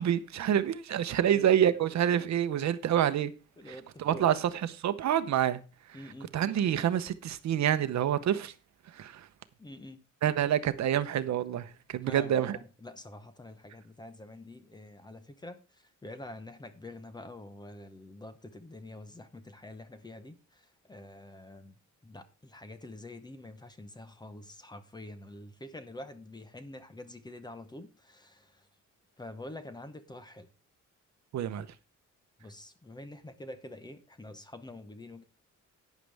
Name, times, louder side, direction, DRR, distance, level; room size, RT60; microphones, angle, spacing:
voice 1, 0.0-3.3 3.7-5.6 5.9-6.0 6.3-8.5 8.9-9.3 10.2-12.5 31.3-31.7, right 10 dB, 60° right, 0.9 m, -27 dB
voice 2, 1.9-2.3 3.6-4.4 5.9-6.3 9.6-10.0 12.0-21.8 22.0-28.7 29.2-30.5 32.4-35.2, left 1 dB, 15° left, 0.9 m, -46 dB
11.5 x 9.3 x 3.4 m
wide cardioid pair, 175°, 31 cm